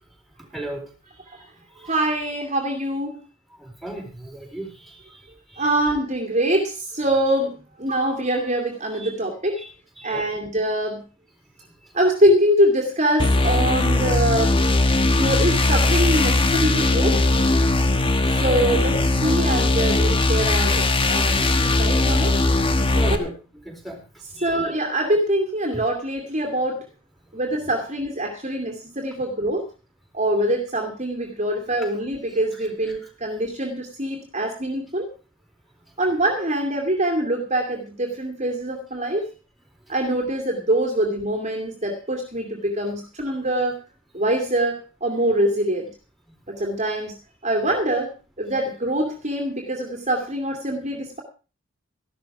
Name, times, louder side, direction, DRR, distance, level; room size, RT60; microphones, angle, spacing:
voice 1, 0.5-0.9 1.8-1.9 3.6-5.2 5.5-5.6 9.0-9.1 9.6-9.7 10.0-10.3 17.9-18.0 18.6-18.7 21.4-21.5 23.0-23.3 23.7-24.0 24.4-24.5 25.7-25.8 46.9-47.0, right 1 dB, ahead, 2 dB, 4.1 m, -35 dB
voice 2, 1.8-3.2 5.6-9.6 10.0-11.0 11.9-14.5 15.0-17.2 18.3-22.4 22.9-23.2 24.4-26.8 27.3-29.7 30.1-35.1 36.0-39.3 39.9-43.8 44.1-45.9 46.5-47.1 47.4-48.1 48.4-51.2, right 1 dB, 30° right, 2 dB, 2.5 m, -24 dB
sound 1, 13.2-23.2, left 2 dB, 25° left, 1.3 m, -19 dB
14.5 x 12.0 x 4.7 m, 0.35 s
head